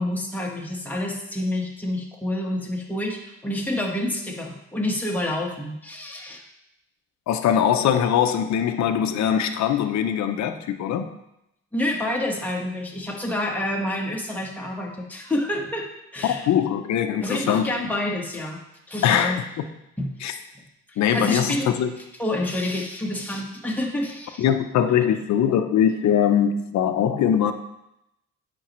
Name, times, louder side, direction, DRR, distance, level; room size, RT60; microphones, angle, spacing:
voice 1, 0.0-6.4 11.7-16.5 17.2-18.6 18.9-19.4 20.0-20.1 20.5-20.6 20.9-21.7 22.2-24.4, left 1 dB, 5° left, -1 dB, 1.3 m, -28 dB
voice 2, 7.3-11.1 16.2-17.7 19.0-19.4 20.2-20.3 21.0-21.9 24.4-27.5, left 9 dB, 65° left, 7 dB, 0.7 m, -21 dB
8.4 x 5.2 x 3.1 m, 0.84 s
cardioid pair, 90°, 30 cm